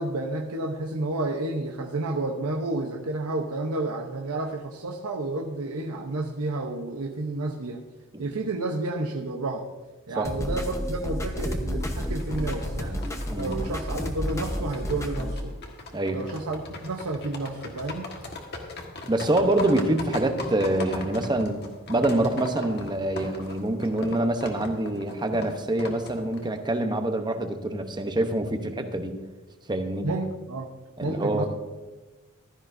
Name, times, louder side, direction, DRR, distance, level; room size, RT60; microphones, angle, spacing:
voice 1, 0.0-7.8 8.2-9.7 10.1-13.0 13.4-15.5 16.1-18.1 19.6-19.7 30.0-30.7 31.0-31.5, right 2 dB, 85° right, 2 dB, 0.8 m, -30 dB
sound 1, 10.2-15.3, equal, 15° left, 0.9 m, -31 dB
sound 2, 11.8-26.7, left 2 dB, 50° left, 1.5 m, -39 dB
voice 2, 19.1-21.6 21.9-29.2 29.7-30.1 31.0-31.5, right 1 dB, 20° right, 6 dB, 0.8 m, -26 dB
15.0 x 12.5 x 2.6 m, 1.2 s
head